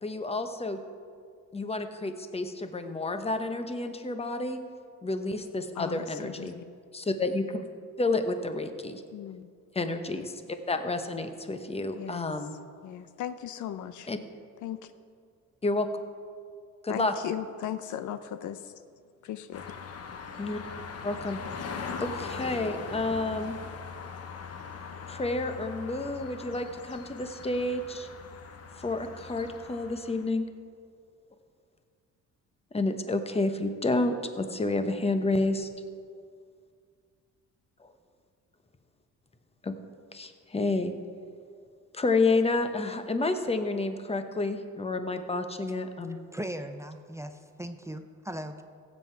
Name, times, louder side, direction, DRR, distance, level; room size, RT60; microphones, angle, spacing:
voice 1, 0.0-0.8 1.5-4.6 5.0-6.5 6.9-7.6 8.0-9.0 9.7-10.4 10.7-12.5 14.1-14.2 15.6-15.9 16.8-17.1 20.4-20.6 21.0-21.4 22.0-23.6 25.1-28.1 28.8-30.5 32.7-35.7 39.6-39.7 40.1-40.9 41.9-46.2, left 2 dB, 20° left, 8 dB, 1.0 m, -30 dB
voice 2, 5.8-6.6 9.1-9.5 11.9-12.3 12.8-14.1 14.6-14.9 16.9-18.6 19.2-19.7, left 10 dB, 75° left, 12 dB, 0.6 m, -37 dB
sound 1, 19.5-30.3, left 5 dB, 55° left, 1.1 m, -40 dB
voice 3, 46.1-48.6, right 1 dB, 10° right, 7 dB, 0.5 m, -38 dB
16.0 x 7.7 x 4.6 m, 2.2 s
cardioid pair, 90°, 30 cm